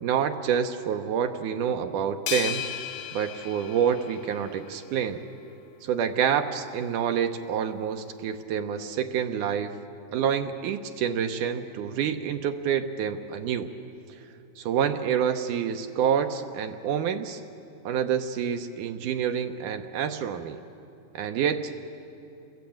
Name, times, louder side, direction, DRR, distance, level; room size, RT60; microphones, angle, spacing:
voice 1, 0.0-2.7 3.1-5.2 5.8-9.8 10.1-13.7 14.6-17.4 17.9-20.6 21.1-21.7, right 8 dB, 75° right, 6 dB, 2.4 m, -27 dB
sound 1, 2.3-4.8, left 10 dB, 70° left, 2.3 m, -35 dB
28.5 x 21.5 x 8.7 m, 2.8 s
omnidirectional pair, 3.8 m